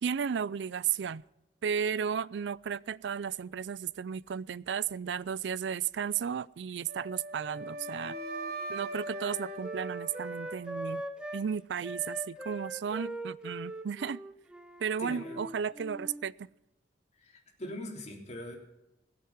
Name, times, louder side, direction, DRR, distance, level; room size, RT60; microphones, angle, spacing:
voice 1, 0.0-1.2 1.6-8.2 8.7-11.0 11.3-14.2 14.8-16.5, right 7 dB, 85° right, 22 dB, 0.4 m, -34 dB
Wind instrument woodwind instrument, 6.9-11.0, right 1 dB, 60° right, 1.6 m, -40 dB
Wind instrument woodwind instrument 2, 7.5-11.5 11.8-16.3, right 1 dB, 5° right, 0.9 m, -42 dB
voice 2, 15.0-15.4 17.2-18.6, left 1 dB, 40° left, 0 dB, 3.4 m, -41 dB
18.0 x 7.8 x 7.2 m, 0.93 s
head